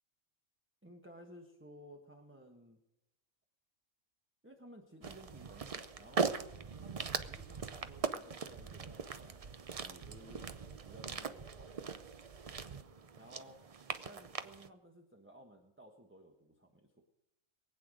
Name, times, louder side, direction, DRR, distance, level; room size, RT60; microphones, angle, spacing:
voice 1, 0.8-2.8 4.4-6.3 6.8-10.5 10.8-11.7 13.2-13.6 14.1-17.0, right 1 dB, 10° right, 2 dB, 1.2 m, -56 dB
sound 1, 5.0-14.7, right 5 dB, 40° right, 0.5 m, -40 dB
23.0 x 8.7 x 5.0 m, 0.93 s
omnidirectional pair, 1.4 m